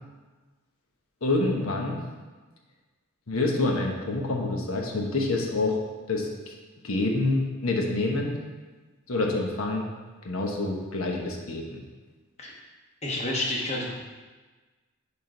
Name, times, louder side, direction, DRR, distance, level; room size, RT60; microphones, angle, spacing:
voice 1, 1.2-2.0 3.3-5.8 6.1-6.6 6.8-8.4 9.1-9.9 10.2-11.8, left 2 dB, 85° left, 0 dB, 1.1 m, -27 dB
voice 2, 13.0-13.9, left 1 dB, 30° left, -3 dB, 1.2 m, -29 dB
10.5 x 3.8 x 3.9 m, 1.3 s
head